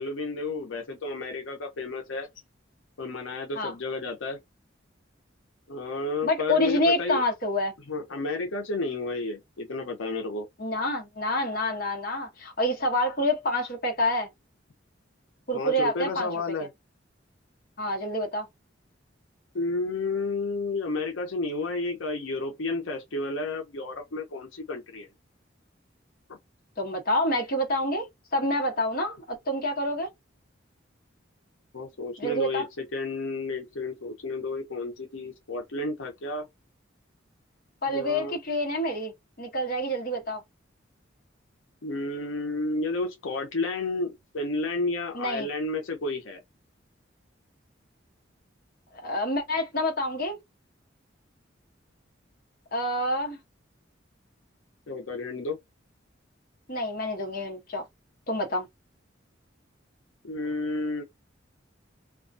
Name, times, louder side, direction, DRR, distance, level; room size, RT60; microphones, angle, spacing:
voice 1, 0.0-2.3 3.0-4.4 5.7-7.2 7.9-10.5 15.5-16.7 19.5-25.1 26.3-26.4 31.7-36.5 37.9-38.4 41.8-46.4 54.9-55.6 60.2-61.0, left 3 dB, 85° left, 0.7 m, -31 dB
voice 2, 6.2-7.7 10.6-14.3 15.5-16.3 17.8-18.4 26.8-28.1 28.3-30.1 32.2-32.7 37.8-39.1 39.4-40.4 45.1-45.5 49.0-50.4 52.7-53.4 56.7-57.8 58.3-58.7, left 1 dB, 50° left, 0.9 m, -27 dB
2.4 x 2.2 x 2.5 m
head